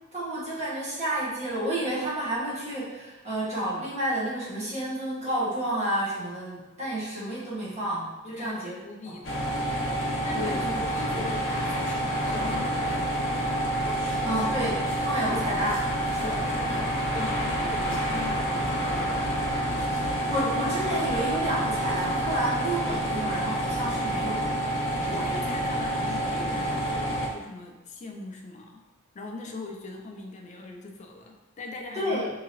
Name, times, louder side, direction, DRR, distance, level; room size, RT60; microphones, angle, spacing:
voice 1, 0.1-8.8 9.1-9.2 10.3-11.2 14.2-16.4 20.3-24.5 25.0-25.3 31.9-32.3, right 1 dB, 30° right, -7 dB, 1.2 m, -30 dB
voice 2, 8.2-9.4 10.2-13.3 14.0-14.3 16.2-20.6 25.0-28.8 29.1-32.2, left 3 dB, 35° left, 2 dB, 0.4 m, -41 dB
sound 1, 9.2-27.3, right 1 dB, 65° left, 0.9 m, -28 dB
3.7 x 2.8 x 2.9 m, 1.1 s
head